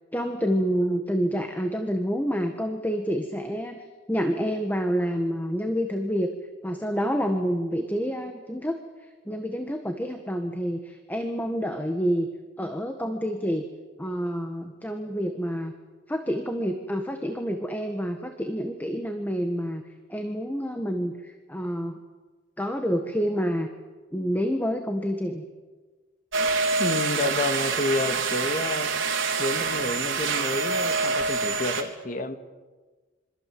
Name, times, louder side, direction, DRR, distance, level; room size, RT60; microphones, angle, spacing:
voice 1, 0.1-6.3 6.6-8.8 9.2-12.3 12.6-13.6 14.0-15.7 16.1-19.8 20.1-22.0 22.6-23.7 24.1-25.4 26.8-26.9, equal, 10° left, 5 dB, 1.6 m, -28 dB
sound 1, 26.3-31.8, right 4 dB, 75° right, 3.5 m, -26 dB
voice 2, 26.8-28.9 29.4-32.4, left 2 dB, 40° left, 7 dB, 2.1 m, -29 dB
27.0 x 25.0 x 7.9 m, 1.3 s
head